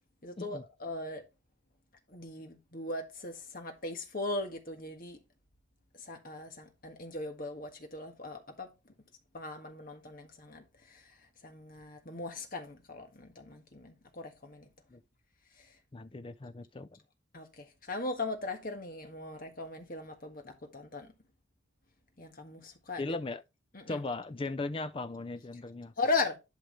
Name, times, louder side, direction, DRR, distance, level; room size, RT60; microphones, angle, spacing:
voice 1, 0.2-1.3 2.1-5.2 6.0-8.9 9.3-11.2 11.4-14.7 15.6-15.8 17.3-21.1 22.2-23.2 23.7-24.0 26.0-26.4, left 3 dB, 45° left, 1.6 m, -38 dB
voice 2, 15.9-16.9 23.0-23.4 23.9-25.9, left 2 dB, 25° left, 0.4 m, -37 dB
11.5 x 4.8 x 3.2 m
head